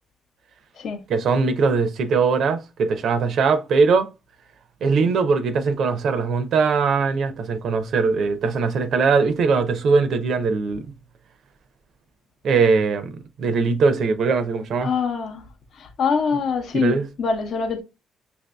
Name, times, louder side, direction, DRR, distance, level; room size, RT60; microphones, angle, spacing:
voice 1, 1.1-4.1 4.8-10.9 12.4-14.9 16.7-17.1, right 4 dB, 70° right, 0.5 m, -21 dB
voice 2, 14.8-15.4 15.7-17.8, left 5 dB, 65° left, 0.6 m, -24 dB
5.8 x 2.6 x 2.2 m
cardioid pair, 90°, 0 cm